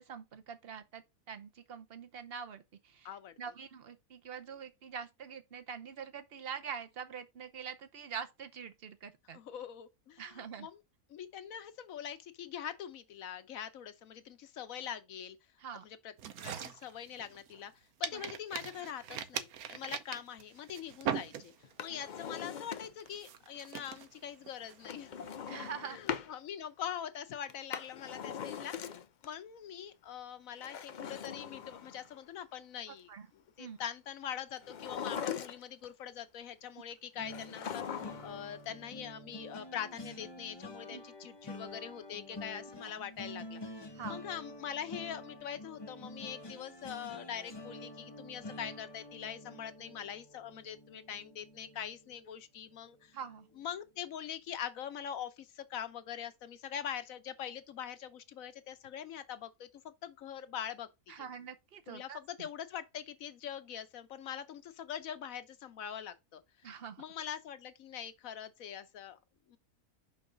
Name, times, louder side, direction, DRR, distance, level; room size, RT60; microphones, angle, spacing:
voice 1, 0.0-9.4 10.2-10.7 15.6-15.8 18.1-18.2 21.9-22.0 25.5-26.2 33.1-33.3 33.6-33.8 40.9-41.0 43.9-44.2 53.1-53.5 61.1-62.5 66.6-67.0, right 7 dB, 45° right, 0.9 m, -45 dB
voice 2, 3.0-3.4 9.3-10.8 11.1-15.4 15.8-16.1 16.4-17.7 18.0-21.5 21.8-25.1 25.8-33.1 33.6-53.2 53.6-61.1 61.9-66.4 67.0-69.2 69.5-69.6, left 9 dB, 65° left, 1.2 m, -43 dB
sound 1, 16.2-17.7 18.0-21.8 22.2-22.5 23.0-25.3, right 8 dB, 75° right, 1.2 m, -41 dB
Drawer open or close, 21.6-23.2 24.8-26.3 27.5-29.3 30.5-32.2 34.6-35.9 37.3-38.4 38.7-38.8, left 8 dB, 85° left, 0.4 m, -41 dB
sound 2, 37.2-52.3 52.7-53.0 53.3-53.5, left 1 dB, 25° left, 0.6 m, -48 dB
5.7 x 5.5 x 3.9 m
omnidirectional pair, 1.6 m